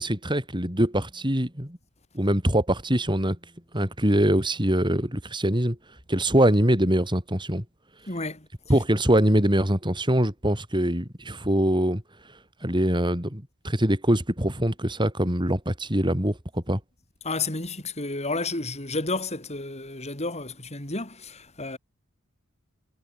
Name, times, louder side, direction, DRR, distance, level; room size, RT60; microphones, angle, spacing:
voice 1, 0.0-1.8 2.1-3.4 3.7-5.8 6.1-7.6 8.7-12.0 12.6-16.8, right 1 dB, 20° right, 6.3 m, -23 dB
voice 2, 8.1-8.5 17.2-21.8, left 3 dB, 30° left, 6.0 m, -31 dB
head